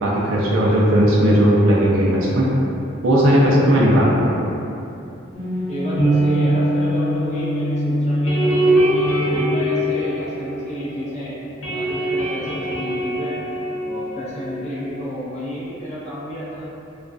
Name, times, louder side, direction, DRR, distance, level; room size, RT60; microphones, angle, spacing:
voice 1, 0.0-2.5 3.0-4.3, equal, 70° right, -5 dB, 0.4 m, -16 dB
sound 1, 5.3-11.2 11.4-14.9, right 1 dB, 65° left, 0.7 m, -22 dB
voice 2, 5.7-11.3 11.7-13.4 13.8-16.7, equal, 35° left, -9 dB, 0.5 m, -30 dB
2.3 x 2.1 x 2.4 m, 2.7 s
head